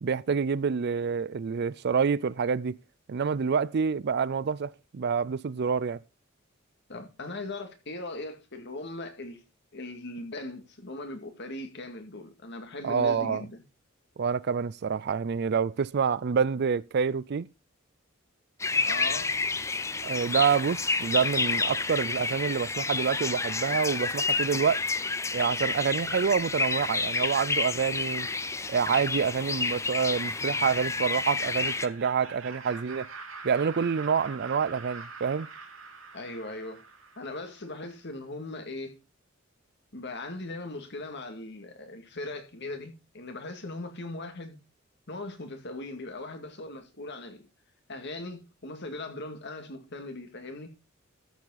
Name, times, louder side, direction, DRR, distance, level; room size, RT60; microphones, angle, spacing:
voice 1, 0.0-2.8 3.1-6.0 12.8-13.4 14.2-17.5 20.0-24.8 25.3-28.3 28.7-33.1 33.4-35.5, right 6 dB, 55° right, 0.4 m, -27 dB
voice 2, 6.9-9.4 9.7-13.6 18.9-19.4 36.1-36.8 37.2-39.0 39.9-44.6 45.1-47.4 47.9-50.7, left 2 dB, 60° left, 2.2 m, -39 dB
sound 1, 18.6-31.9, left 4 dB, 15° left, 0.6 m, -30 dB
Laughter, 31.0-37.8, right 4 dB, 70° right, 2.9 m, -44 dB
13.5 x 7.3 x 4.0 m
head